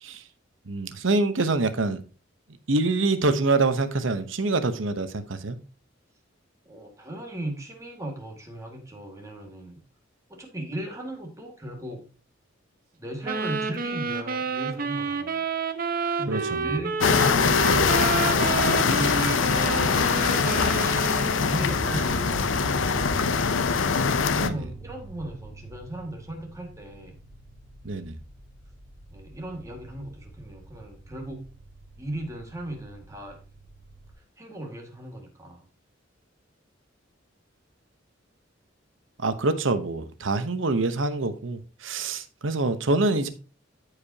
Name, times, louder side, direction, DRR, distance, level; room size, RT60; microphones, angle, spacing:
voice 1, 0.7-2.0 2.7-5.6 16.3-16.6 24.4-24.6 27.8-28.2 39.2-43.3, right 3 dB, 75° right, 0.9 m, -25 dB
voice 2, 6.7-9.8 10.3-12.1 13.0-15.4 16.2-17.0 17.7-20.9 21.4-22.9 24.3-27.1 29.1-31.5 32.0-33.4 34.4-35.7, right 1 dB, 15° right, 1.9 m, -37 dB
sound 1, 13.2-21.6, right 5 dB, 45° right, 0.8 m, -29 dB
sound 2, 17.0-24.5, left 5 dB, 70° left, 0.6 m, -23 dB
sound 3, 21.7-34.1, right 2 dB, 5° left, 1.9 m, -43 dB
13.5 x 5.0 x 2.8 m
head